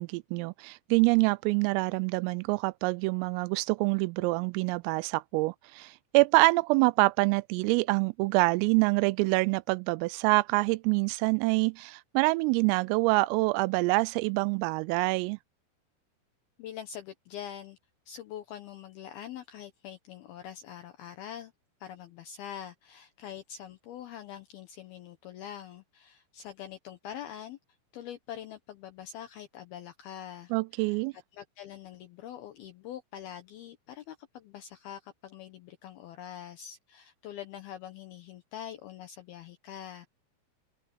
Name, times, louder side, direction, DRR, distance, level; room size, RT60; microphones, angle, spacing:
voice 1, 0.0-15.4 30.5-31.1, right 25 dB, 85° right, 3.2 m, -26 dB
voice 2, 16.6-17.8 18.1-21.5 21.8-27.6 27.9-40.1, left 10 dB, 85° left, 2.1 m, -44 dB
open air
omnidirectional pair, 5.9 m